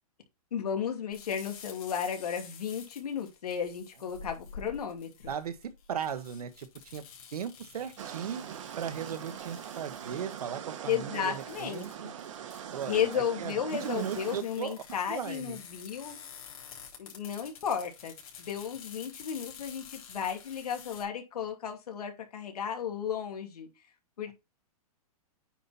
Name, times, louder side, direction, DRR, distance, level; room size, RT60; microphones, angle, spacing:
voice 1, 0.5-5.3 10.9-11.9 12.9-16.2 17.0-23.7 24.2-24.3, left 8 dB, 85° left, 2.6 m, -34 dB
sound 1, 1.1-21.0, left 6 dB, 65° left, 3.9 m, -50 dB
voice 2, 5.3-7.0 7.3-8.4 8.8-12.1 12.7-15.6, right 8 dB, 85° right, 1.5 m, -37 dB
sound 2, 8.0-14.4, right 9 dB, 55° right, 1.4 m, -42 dB
9.1 x 4.3 x 4.2 m
hypercardioid pair, 170°, 19 cm